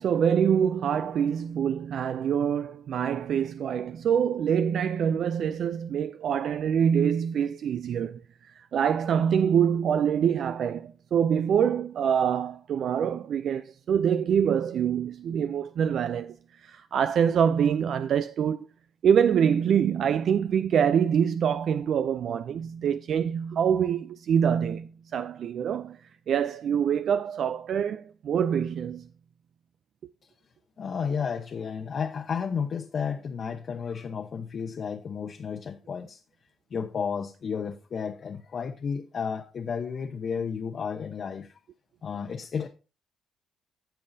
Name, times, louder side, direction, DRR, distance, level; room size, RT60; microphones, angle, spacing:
voice 1, 0.0-16.4 16.6-18.7 19.0-26.0 26.3-29.1, right 8 dB, 65° right, 0.4 m, -25 dB
voice 2, 30.8-36.2 36.7-41.5 42.0-42.7, left 6 dB, 50° left, 0.8 m, -32 dB
15.0 x 5.5 x 2.7 m
cardioid pair, 90°, 0 cm